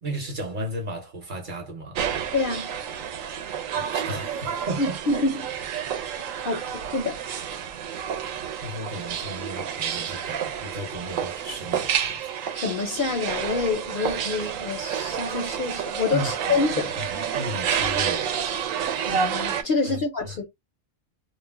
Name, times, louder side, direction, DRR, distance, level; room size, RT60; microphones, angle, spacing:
voice 1, 0.0-2.0 3.7-5.0 6.4-6.7 8.6-12.2 16.1-16.6 17.0-18.4 19.9-20.4, right 1 dB, 45° right, 0.8 m, -35 dB
sound 1, 1.9-19.6, right 8 dB, 85° right, 1.0 m, -29 dB
voice 2, 2.3-2.7 4.8-5.4 6.4-7.2 12.5-16.9 19.0-20.5, left 3 dB, 55° left, 0.6 m, -27 dB
2.4 x 2.1 x 3.3 m
omnidirectional pair, 1.3 m